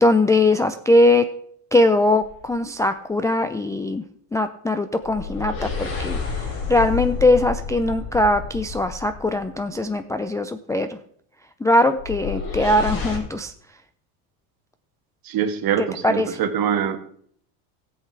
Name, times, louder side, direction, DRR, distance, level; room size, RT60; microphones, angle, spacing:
voice 1, 0.0-1.3 1.7-4.0 4.3-11.0 11.6-13.5 16.0-16.4, left 1 dB, 5° left, 7 dB, 0.4 m, -20 dB
sound 1, 2.2-2.6 5.0-9.6 12.0-13.2, left 5 dB, 45° left, 5.9 m, -30 dB
voice 2, 15.3-17.0, right 8 dB, 45° right, 7 dB, 1.8 m, -24 dB
14.0 x 8.0 x 4.7 m, 0.64 s
supercardioid pair, 95°, 50 cm